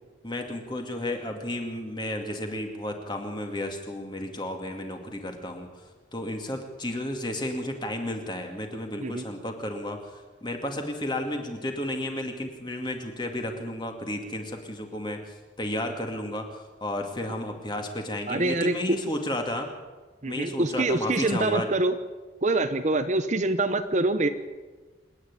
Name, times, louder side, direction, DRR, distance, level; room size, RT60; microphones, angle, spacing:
voice 1, 0.2-5.7 6.1-15.2 15.6-19.7 20.3-21.7, left 1 dB, 25° left, 4 dB, 2.4 m, -32 dB
voice 2, 18.3-18.7 20.2-21.9 22.4-24.3, right 2 dB, 40° right, 9 dB, 0.8 m, -25 dB
27.5 x 9.8 x 9.8 m, 1.3 s
head